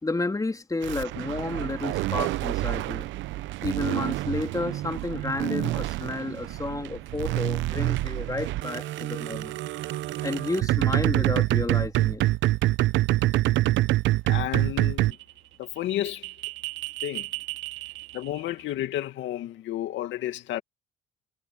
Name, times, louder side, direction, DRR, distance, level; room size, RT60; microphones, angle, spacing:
voice 1, 0.0-3.1 3.6-9.6 10.2-12.2, left 3 dB, 15° left, 3.7 m, -31 dB
sound 1, 0.8-15.2 15.9-18.3, right 17 dB, 75° right, 0.8 m, -27 dB
voice 2, 14.3-15.2 15.6-16.3 17.0-17.3 18.1-20.6, left 13 dB, 75° left, 2.1 m, -31 dB
supercardioid pair, 85°, 20 cm